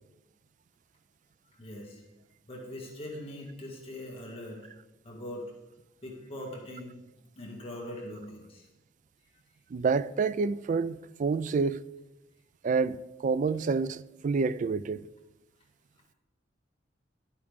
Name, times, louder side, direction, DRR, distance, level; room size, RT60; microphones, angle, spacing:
voice 1, 1.6-2.0 2.5-4.7 5.0-5.5 6.0-7.0 7.3-8.6, left 1 dB, 30° left, 2.2 m, -41 dB
voice 2, 9.7-11.8 12.6-13.0 13.2-15.1, right 4 dB, 45° right, 0.3 m, -28 dB
12.5 x 8.7 x 3.7 m
head